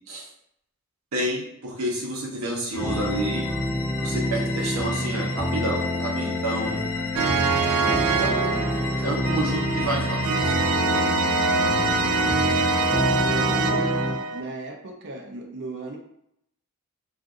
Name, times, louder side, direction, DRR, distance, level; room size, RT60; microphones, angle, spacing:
voice 1, 1.1-3.4 4.0-6.9 8.2-8.7 9.0-10.4, right 1 dB, 75° right, -2 dB, 1.0 m, -29 dB
sound 1, 2.7-13.2, left 5 dB, 65° left, 0.4 m, -35 dB
sound 2, 2.7-14.2, left 1 dB, 5° left, 0.7 m, -28 dB
sound 3, 7.2-14.4, right 4 dB, 90° right, 0.3 m, -24 dB
voice 2, 11.7-12.7 13.2-14.0 14.3-16.0, right 2 dB, 55° right, 0 dB, 0.6 m, -37 dB
2.6 x 2.5 x 3.6 m, 0.74 s
head